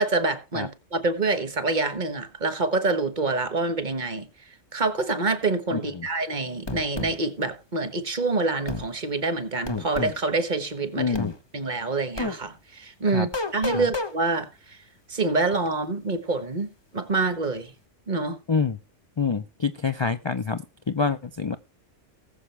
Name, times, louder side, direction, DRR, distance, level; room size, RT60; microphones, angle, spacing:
voice 1, 0.0-4.3 4.7-11.2 11.5-14.8 15.1-17.7 18.1-18.4, right 3 dB, 40° right, 1.3 m, -26 dB
voice 2, 5.7-6.1 11.0-11.3 13.1-13.3 13.7-13.9 18.5-18.8 19.2-21.6, left 5 dB, 40° left, 0.4 m, -27 dB
sound 1, 6.7-7.1 8.7-8.9 9.7-10.2 11.1-11.3 12.2-12.4 13.3-14.1, left 3 dB, 25° left, 1.0 m, -29 dB
19.5 x 7.0 x 3.3 m
omnidirectional pair, 1.2 m